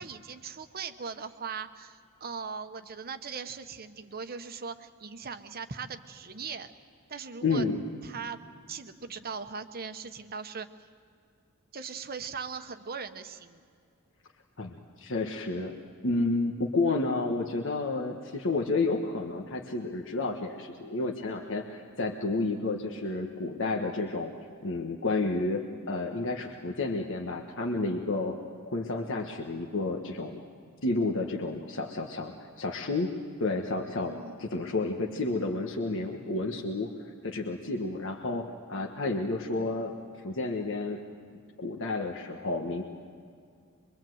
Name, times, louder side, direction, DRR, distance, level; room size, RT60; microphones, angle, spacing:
voice 1, 0.0-6.7 7.1-7.6 8.0-8.4 8.7-10.7 11.7-13.6 34.1-34.4, right 5 dB, 45° right, 9 dB, 1.0 m, -39 dB
voice 2, 7.4-7.8 14.6-15.7 16.0-24.3 24.6-28.3 28.7-30.4 30.8-33.1 33.4-36.9 37.2-39.9 40.2-41.0 41.6-42.8, left 3 dB, 60° left, 2 dB, 1.4 m, -31 dB
24.0 x 23.5 x 7.9 m, 2.2 s
head